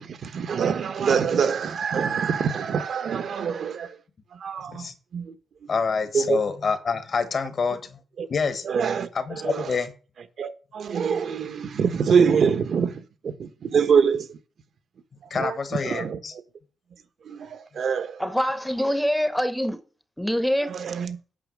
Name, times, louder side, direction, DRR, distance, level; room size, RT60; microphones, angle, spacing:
voice 1, 0.0-4.0 4.3-4.9 5.1-5.3 6.1-6.4 8.2-8.3 8.6-9.7 10.4-14.3 15.3-15.6 15.8-16.2 17.2-18.2 20.6-21.2, right 6 dB, 60° right, 1.1 m, -25 dB
voice 2, 5.7-8.0 8.3-8.6 9.1-9.9 15.3-16.3, left 5 dB, 45° left, 1.2 m, -27 dB
voice 3, 18.2-19.8 20.2-20.7, equal, ahead, 0.8 m, -24 dB
8.8 x 5.9 x 5.9 m
wide cardioid pair, 160°, 0 cm